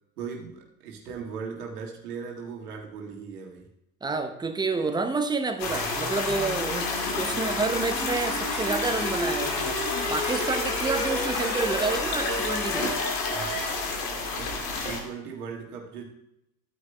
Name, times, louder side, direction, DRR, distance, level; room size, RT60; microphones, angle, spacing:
voice 1, 0.2-3.7 7.2-7.6 13.3-13.6 14.3-14.5 14.8-16.0, right 6 dB, 65° right, -1 dB, 1.9 m, -38 dB
voice 2, 4.0-6.9 7.2-12.9, right 4 dB, 10° right, 6 dB, 0.8 m, -29 dB
sound 1, 5.6-13.6, equal, 85° left, 3.1 m, -35 dB
sound 2, 5.6-15.0, left 3 dB, 55° left, 2.3 m, -30 dB
14.5 x 9.5 x 2.2 m, 0.83 s
figure-of-eight pair, 75°, 49 cm